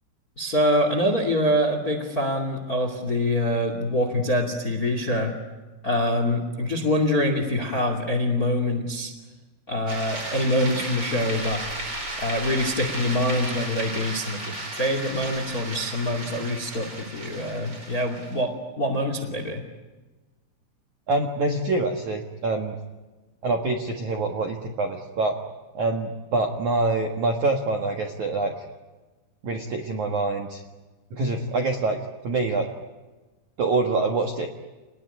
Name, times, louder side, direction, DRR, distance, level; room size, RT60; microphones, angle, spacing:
voice 1, 0.4-5.3 5.8-9.1 9.7-11.6 12.2-19.6, left 1 dB, 35° left, 7 dB, 1.5 m, -25 dB
sound 1, 9.9-18.4, right 1 dB, 20° right, 4.8 m, -34 dB
voice 2, 21.1-22.8 23.4-25.4 25.7-28.5 29.4-30.6 31.1-32.0 32.2-32.7 33.6-34.5, right 3 dB, 65° right, 3 dB, 1.9 m, -25 dB
29.0 x 20.5 x 10.0 m, 1.2 s
omnidirectional pair, 6.0 m